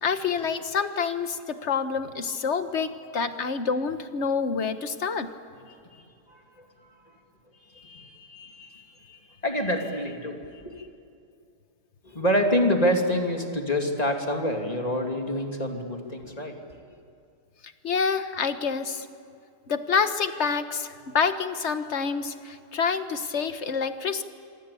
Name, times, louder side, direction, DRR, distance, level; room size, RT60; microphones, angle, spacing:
voice 1, 0.0-5.3 17.8-19.1 19.7-24.2, left 5 dB, 45° left, 9 dB, 1.4 m, -27 dB
voice 2, 5.9-6.7 6.9-7.1 7.7-10.9 12.0-16.6, equal, 20° left, 3 dB, 2.8 m, -28 dB
26.0 x 25.5 x 8.5 m, 2.5 s
omnidirectional pair, 1.8 m